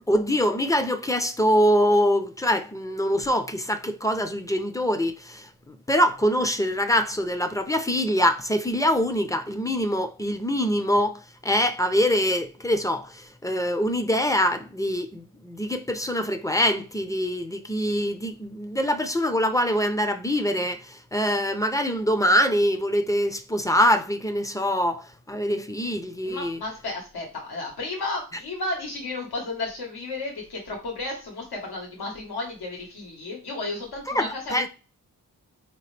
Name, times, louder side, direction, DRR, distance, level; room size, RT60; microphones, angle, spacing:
voice 1, 0.0-26.6 34.1-34.7, equal, 10° left, 0.5 m, -24 dB
voice 2, 26.2-34.7, left 2 dB, 85° left, 1.5 m, -33 dB
4.4 x 2.9 x 3.3 m
cardioid pair, 60°, 37 cm